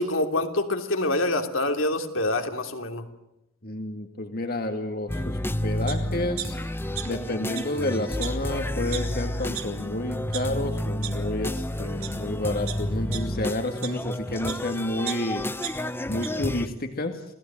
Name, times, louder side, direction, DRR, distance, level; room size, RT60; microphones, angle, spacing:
voice 1, 0.0-3.0, left 2 dB, 70° left, 5 dB, 3.0 m, -26 dB
voice 2, 3.6-6.6 7.0-15.5 16.1-17.2, left 1 dB, 45° left, 5 dB, 2.1 m, -30 dB
sound 1, 5.1-16.7, left 1 dB, 10° left, 1.0 m, -31 dB
sound 2, 5.9-6.0 6.4-7.3 7.5-7.6 8.2-8.3 8.9-9.0 9.5-9.6 10.1-10.4 11.0-11.1 11.8-12.1 12.7-14.6 15.1-16.3 16.7-16.8, right 12 dB, 85° right, 3.5 m, -35 dB
29.0 x 18.5 x 8.9 m, 0.89 s
head